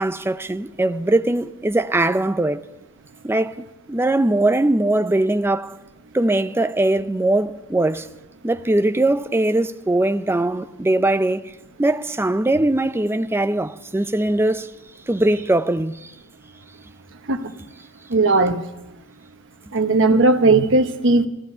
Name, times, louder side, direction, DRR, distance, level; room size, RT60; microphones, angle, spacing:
voice 1, 0.0-2.6 3.2-5.8 6.1-8.1 8.4-11.5 11.8-14.7 15.1-16.1, right 1 dB, 10° right, 0.4 m, -21 dB
voice 2, 18.1-18.6 19.7-21.3, right 3 dB, 60° right, 1.1 m, -16 dB
14.0 x 13.0 x 5.6 m
head